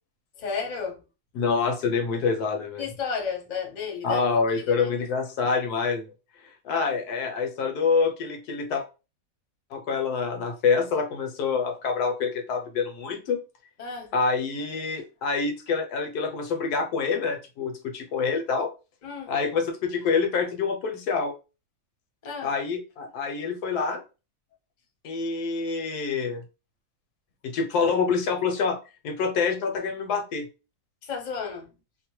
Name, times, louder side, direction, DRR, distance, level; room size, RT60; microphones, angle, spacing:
voice 1, 0.4-1.0 2.8-4.9 13.8-14.1 19.0-19.3 22.2-22.5 31.0-31.7, left 5 dB, 40° left, 0.6 m, -33 dB
voice 2, 1.3-2.8 4.0-6.1 6.6-8.8 9.7-13.4 14.1-18.7 19.3-21.3 22.4-24.0 25.0-26.4 27.4-28.8 29.0-30.5, left 5 dB, 75° left, 1.1 m, -26 dB
2.8 x 2.1 x 2.9 m
omnidirectional pair, 1.8 m